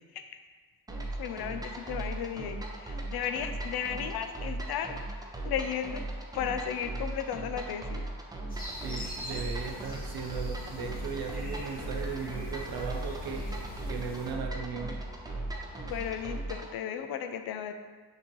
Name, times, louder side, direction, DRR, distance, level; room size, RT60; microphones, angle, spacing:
sound 1, 0.9-16.7, right 2 dB, 10° right, 0.5 m, -38 dB
voice 1, 1.2-4.9 5.4-6.0 6.3-8.0 15.9-17.7, left 8 dB, 70° left, 7 dB, 0.5 m, -34 dB
sound 2, 8.5-14.3, left 1 dB, 20° left, 1.2 m, -43 dB
sound 3, 8.8-16.2, equal, 30° right, 1.1 m, -52 dB
voice 2, 8.8-15.0, right 6 dB, 70° right, 3 dB, 0.7 m, -37 dB
5.9 x 2.8 x 3.0 m, 1.4 s
cardioid pair, 90°, 39 cm